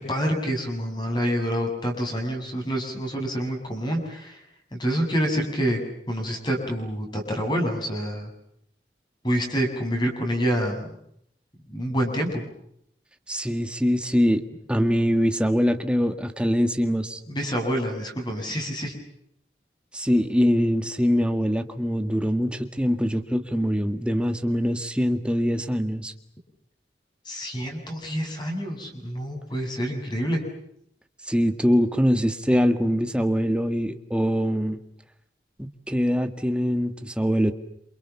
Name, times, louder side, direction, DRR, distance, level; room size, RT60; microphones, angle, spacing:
voice 1, 0.0-4.4 4.7-5.8 6.1-8.3 9.2-10.9 11.7-12.4 17.3-18.9 27.3-30.4, equal, 25° left, 3 dB, 7.4 m, -27 dB
voice 2, 13.3-17.2 19.9-26.1 31.3-34.8 35.6-37.5, equal, 5° right, 8 dB, 1.8 m, -23 dB
28.0 x 28.0 x 7.2 m, 0.74 s
head